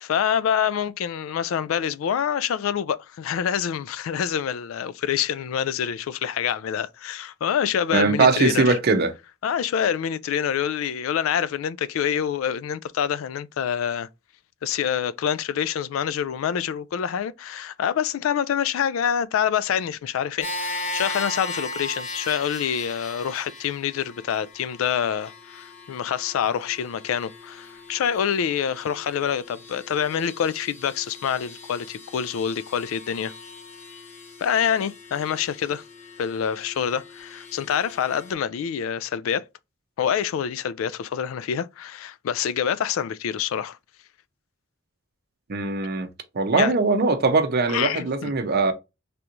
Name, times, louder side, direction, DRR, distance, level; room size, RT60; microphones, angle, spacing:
voice 1, 0.0-8.8 9.4-14.1 14.6-33.3 34.4-35.8 36.2-39.4 40.0-43.8 46.6-46.7 47.7-48.3, left 8 dB, 80° left, 0.3 m, -26 dB
voice 2, 7.9-9.1 45.5-46.1 46.3-48.7, right 3 dB, 50° right, 0.6 m, -21 dB
sound 1, 20.4-38.3, left 2 dB, 35° left, 0.8 m, -38 dB
3.4 x 2.9 x 2.5 m
head